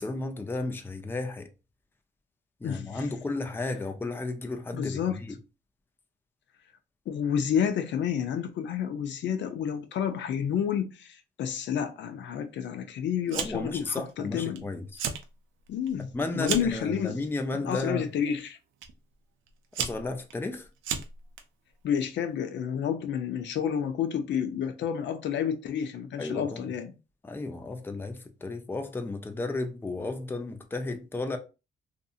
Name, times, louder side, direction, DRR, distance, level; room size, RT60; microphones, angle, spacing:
voice 1, 0.0-1.5 2.6-5.4 13.4-15.0 16.1-18.1 19.8-20.7 26.2-26.6 27.2-31.4, left 2 dB, 10° left, 0.4 m, -33 dB
voice 2, 2.6-3.0 4.7-5.2 7.1-14.6 15.7-17.1 17.5-18.6 21.8-26.9, left 8 dB, 65° left, 0.5 m, -30 dB
Fire, 13.3-13.8 14.1-14.6 14.9-15.3 15.7-16.8 17.6-17.9 18.8-18.9 19.5-21.4, right 7 dB, 80° right, 0.5 m, -34 dB
2.7 x 2.6 x 2.4 m
cardioid pair, 90°, 20 cm